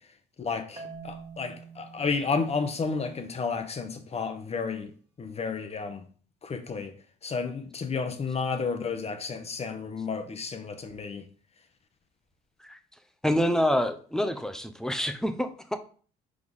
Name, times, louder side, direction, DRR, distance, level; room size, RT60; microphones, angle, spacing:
voice 1, 0.4-4.9 5.2-6.1 6.4-6.9 7.2-11.2, left 5 dB, 35° left, 1.2 m, -32 dB
Marimba xylophone, 0.8-3.7, right 5 dB, 25° right, 2.1 m, -47 dB
voice 2, 13.2-15.8, equal, 5° left, 0.9 m, -27 dB
6.4 x 4.7 x 3.6 m
supercardioid pair, 70°, 18 cm